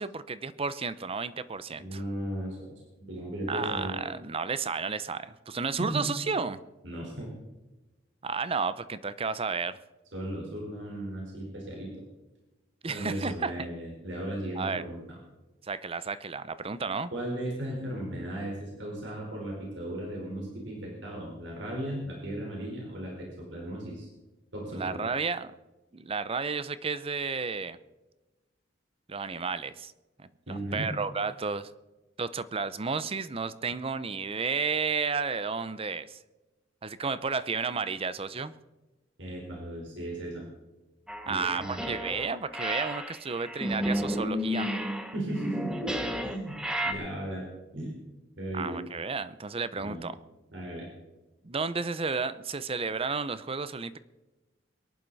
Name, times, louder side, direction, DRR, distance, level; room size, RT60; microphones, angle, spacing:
voice 1, 0.0-2.0 3.5-6.6 8.2-9.8 12.8-13.7 14.6-14.8 15.6-17.1 24.7-25.5 25.9-27.8 29.1-29.9 30.2-31.7 32.2-36.2 36.8-38.5 41.3-44.7 48.5-50.2 51.4-54.0, right 4 dB, 30° right, 15 dB, 0.7 m, -32 dB
voice 2, 1.7-2.7 3.1-3.9 5.8-6.0 6.8-7.3 10.1-11.9 12.9-15.0 17.1-24.1 24.5-25.0 30.5-30.9 39.2-40.5 41.3-41.8 45.1-45.9 46.2-46.6 46.8-47.4 47.7-47.9 48.4-48.8 49.7-50.0 50.5-50.9, right 1 dB, 75° right, -2 dB, 4.4 m, -36 dB
sound 1, 41.1-42.3 42.5-46.9, equal, 5° right, 1.2 m, -32 dB
23.0 x 11.0 x 4.1 m, 1.1 s
head